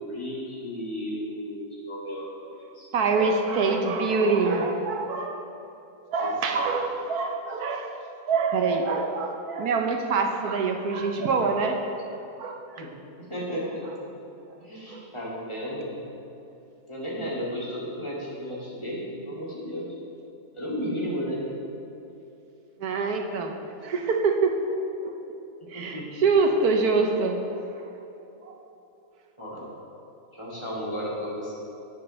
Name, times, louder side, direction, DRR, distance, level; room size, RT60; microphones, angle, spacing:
voice 1, 0.0-2.2 2.7-2.9 4.7-4.9 6.2-6.7 12.8-12.9 13.2-13.9 14.6-16.0 16.9-19.9 20.5-21.4 25.6-26.2 29.4-29.7 30.3-31.5, equal, 20° left, -6 dB, 2.4 m, -34 dB
voice 2, 2.9-5.4 6.1-7.9 8.3-11.8 12.1-12.8 14.9-15.0 22.8-23.5 23.8-25.1 25.7-27.9 28.4-28.6, right 4 dB, 85° right, 3 dB, 1.4 m, -25 dB
18.0 x 6.9 x 3.3 m, 2.9 s
omnidirectional pair, 1.6 m